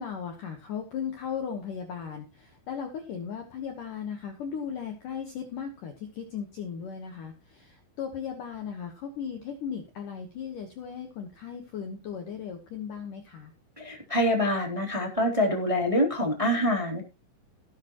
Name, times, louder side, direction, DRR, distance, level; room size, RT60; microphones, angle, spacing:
voice 1, 0.0-13.5, left 7 dB, 75° left, 4 dB, 1.9 m, -37 dB
voice 2, 13.8-17.0, left 1 dB, 10° right, 0 dB, 2.2 m, -25 dB
18.5 x 8.7 x 3.0 m, 0.30 s
omnidirectional pair, 5.9 m